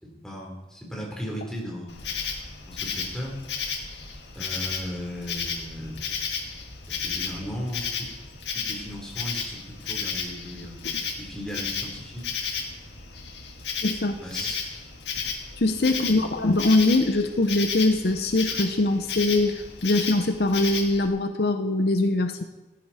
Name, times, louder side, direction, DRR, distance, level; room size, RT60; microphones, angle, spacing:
voice 1, 0.0-2.1 2.7-3.4 4.3-6.3 6.9-8.1 8.5-10.9 11.2-12.3 14.2-14.6 16.0-16.2, equal, 5° left, -2 dB, 3.6 m, -36 dB
Insect, 1.9-21.1, left 6 dB, 85° left, 1.9 m, -33 dB
voice 2, 13.8-14.2 15.6-22.4, left 2 dB, 60° left, 7 dB, 0.8 m, -22 dB
15.0 x 14.0 x 4.2 m, 1.1 s
head